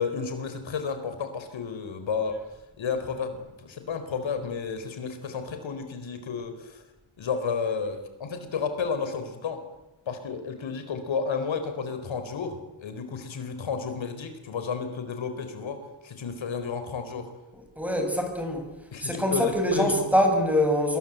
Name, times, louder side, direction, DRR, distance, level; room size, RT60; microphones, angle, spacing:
voice 1, 0.0-2.4 2.8-6.8 7.2-9.6 10.1-17.3 18.9-20.1, left 5 dB, 75° left, 8 dB, 4.5 m, -32 dB
voice 2, 17.8-18.6 19.0-21.0, equal, 5° right, 4 dB, 6.7 m, -24 dB
27.0 x 23.0 x 8.3 m, 0.97 s
wide cardioid pair, 125°, 46 cm